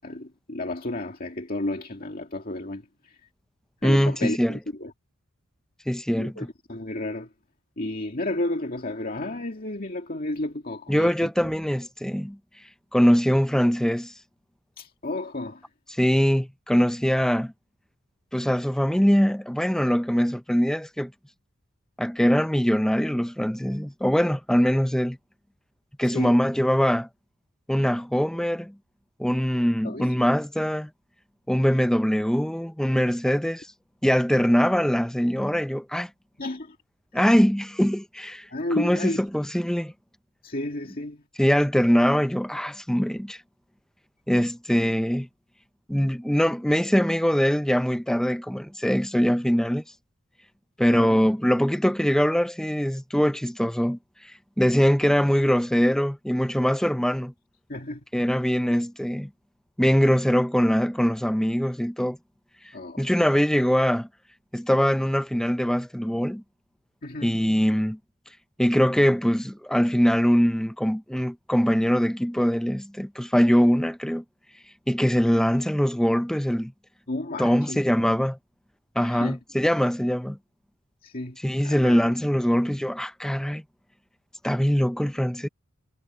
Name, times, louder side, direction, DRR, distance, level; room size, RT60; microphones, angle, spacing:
voice 1, 0.0-3.2 3.8-4.9 6.2-7.3 7.8-11.3 14.8-15.7 26.0-26.4 29.8-30.1 33.3-33.4 36.4-36.8 37.1-37.3 38.5-39.2 40.4-41.2 50.9-51.2 57.7-58.0 62.7-63.0 67.0-67.4 77.1-77.8 79.0-79.4 81.0-81.4 81.6-82.1, left 1 dB, 40° left, 2.1 m, -32 dB
voice 2, 3.8-4.6 5.9-6.5 10.9-12.4 12.9-14.1 15.9-17.5 18.3-21.1 22.0-25.2 26.0-27.1 27.7-28.7 29.2-30.9 31.5-33.7 34.0-36.1 37.1-38.5 38.8-39.9 41.4-43.4 44.3-45.3 45.9-49.8 50.8-54.3 54.6-57.3 58.1-59.3 59.8-62.2 63.0-64.1 64.5-66.4 67.2-68.0 68.6-74.2 74.9-76.7 77.4-78.4 79.0-80.4 81.4-83.6 84.4-85.5, equal, 5° left, 0.5 m, -22 dB
head